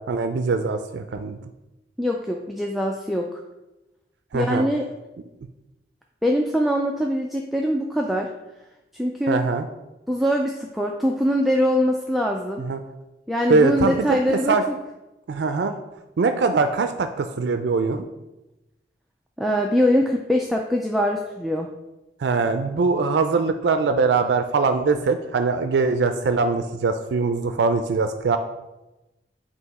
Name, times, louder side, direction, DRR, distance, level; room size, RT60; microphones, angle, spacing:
voice 1, 0.1-1.4 4.3-4.6 9.3-9.7 12.6-12.8 13.5-14.6 15.3-15.8 16.2-18.1 22.2-28.4, right 4 dB, 80° right, 8 dB, 0.4 m, -22 dB
voice 2, 2.0-3.4 4.3-4.9 6.2-8.3 8.9-9.4 10.1-12.6 13.3-14.7 19.4-21.7, equal, ahead, 0 dB, 0.3 m, -23 dB
8.0 x 2.8 x 4.7 m, 1.0 s
head